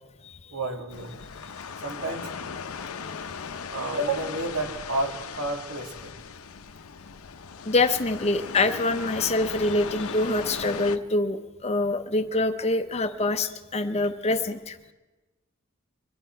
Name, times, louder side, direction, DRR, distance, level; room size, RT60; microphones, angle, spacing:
voice 1, 0.5-1.1 1.8-2.3 3.7-6.1, right 2 dB, 70° right, 3 dB, 2.0 m, -30 dB
sound 1, 0.9-11.0, left 6 dB, 75° left, 0.7 m, -38 dB
voice 2, 7.7-14.8, left 2 dB, 30° left, 9 dB, 0.6 m, -25 dB
24.5 x 11.5 x 4.5 m, 1.2 s
head